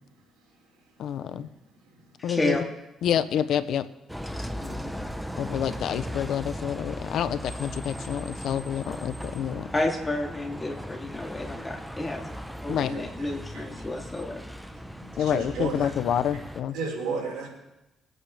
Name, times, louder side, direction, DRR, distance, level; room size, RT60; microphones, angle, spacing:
voice 1, 1.0-1.5 2.2-2.6 3.0-3.9 5.4-9.7 12.7-12.9 15.2-16.8, left 9 dB, 75° left, 13 dB, 0.6 m, -28 dB
voice 2, 2.2-2.6 4.5-4.9 9.7-12.3 12.6-14.4, left 1 dB, 20° left, 0 dB, 2.8 m, -31 dB
Bus, 4.1-16.6, equal, ahead, 0.9 m, -38 dB
voice 3, 15.2-15.9 16.7-17.5, right 4 dB, 90° right, -4 dB, 4.8 m, -32 dB
23.0 x 8.8 x 3.4 m, 0.96 s
cardioid pair, 90°, 0 cm